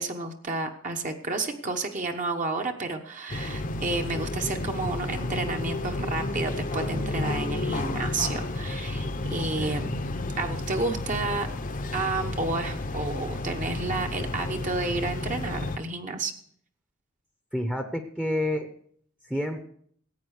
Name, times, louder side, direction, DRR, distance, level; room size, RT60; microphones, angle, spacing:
voice 1, 0.0-9.9 10.4-11.5 11.9-16.3, right 3 dB, 35° right, 4 dB, 1.1 m, -31 dB
sound 1, 3.3-15.8, left 2 dB, 40° left, 0.8 m, -31 dB
voice 2, 9.4-9.9 17.5-18.7 19.2-19.6, left 1 dB, 5° right, 6 dB, 0.8 m, -30 dB
15.0 x 9.0 x 6.5 m, 0.64 s
head